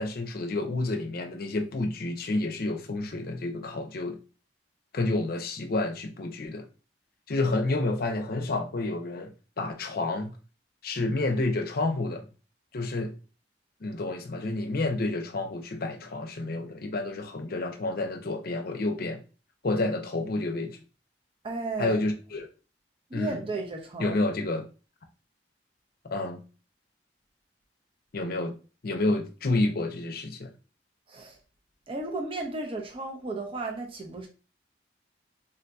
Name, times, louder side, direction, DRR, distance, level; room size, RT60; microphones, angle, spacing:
voice 1, 0.0-4.2 4.9-6.6 7.3-10.3 10.8-12.2 12.7-13.1 13.8-19.2 19.6-20.8 21.8-22.5 23.1-23.4 24.0-24.6 26.0-26.4 28.1-28.5 28.8-30.5, left 2 dB, 55° left, 0.6 m, -29 dB
voice 2, 21.4-22.0 23.1-24.2 31.1-31.4 31.9-34.3, right 2 dB, 30° right, 0.5 m, -34 dB
3.7 x 2.6 x 2.2 m
head